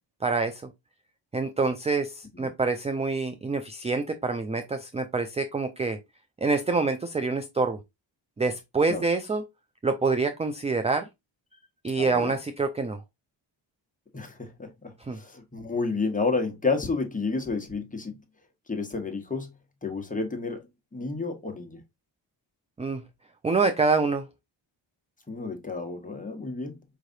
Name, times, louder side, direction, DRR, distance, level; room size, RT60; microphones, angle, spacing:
voice 1, 0.2-0.7 1.3-6.0 6.4-7.8 8.4-9.5 9.8-11.1 11.8-13.0 15.0-15.2 22.8-23.0 23.4-24.3, right 4 dB, 15° right, 0.4 m, -26 dB
voice 2, 12.0-12.3 14.1-18.1 18.7-19.5 19.8-20.6 20.9-21.8 25.3-26.8, left 4 dB, 15° left, 1.2 m, -30 dB
4.8 x 3.3 x 2.6 m
cardioid pair, 95°, 47 cm